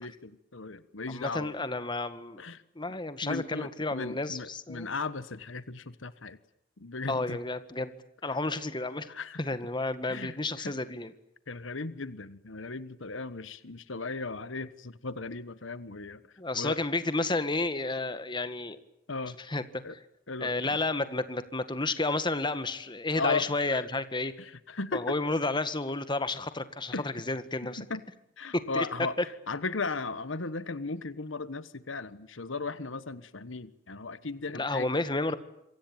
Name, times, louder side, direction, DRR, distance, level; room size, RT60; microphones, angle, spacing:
voice 1, 0.0-1.5 2.4-2.6 3.2-6.4 6.8-7.4 9.1-9.4 10.1-10.7 11.5-16.2 16.6-16.8 19.1-19.4 19.8-19.9 20.3-20.5 23.1-23.8 24.4-25.2 26.9-27.0 27.6-28.0 28.4-29.1 29.5-34.9, left 3 dB, 75° left, 14 dB, 1.4 m, -36 dB
voice 2, 1.1-2.4 2.8-4.9 7.1-7.9 8.2-9.1 9.4-11.1 16.4-18.8 19.5-19.6 19.9-20.0 20.4-24.3 24.9-27.8 28.5-28.9 34.5-35.4, left 2 dB, 25° left, 11 dB, 1.9 m, -31 dB
27.0 x 24.5 x 9.0 m, 0.78 s
head